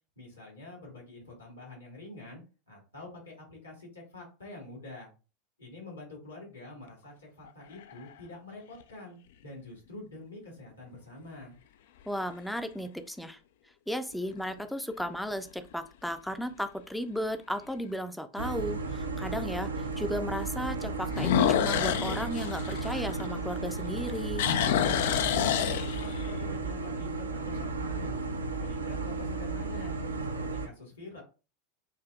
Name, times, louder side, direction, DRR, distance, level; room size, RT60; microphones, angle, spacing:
voice 1, 0.2-5.1 5.6-11.6 24.8-28.3 28.6-30.0 30.2-31.2, left 2 dB, 75° left, -1 dB, 2.0 m, -46 dB
sound 1, 7.5-8.1 8.8-8.9 14.1-14.6 15.1-15.2 15.7-15.8 16.1-16.2 17.7-17.8 21.1-23.6 24.0-26.3, left 10 dB, 60° left, 0.3 m, -28 dB
voice 2, 12.1-13.4 13.9-24.5, equal, ahead, 9 dB, 0.5 m, -35 dB
sound 2, 18.4-30.7, right 3 dB, 80° right, 0.5 m, -34 dB
6.8 x 2.6 x 2.4 m, 0.34 s
figure-of-eight pair, 80°, 0 cm